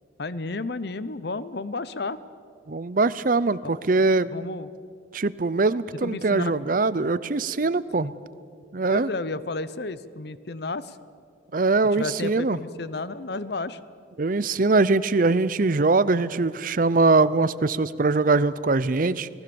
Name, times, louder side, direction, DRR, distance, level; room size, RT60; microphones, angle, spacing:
voice 1, 0.2-2.2 3.6-3.8 4.3-4.7 6.0-6.5 8.0-8.1 8.9-11.0 12.0-13.8, left 3 dB, 55° left, 15 dB, 0.8 m, -32 dB
voice 2, 2.7-4.3 5.1-8.1 8.7-9.1 11.5-12.6 14.2-19.3, right 3 dB, 45° right, 17 dB, 0.6 m, -22 dB
29.5 x 19.0 x 7.0 m, 2.2 s
head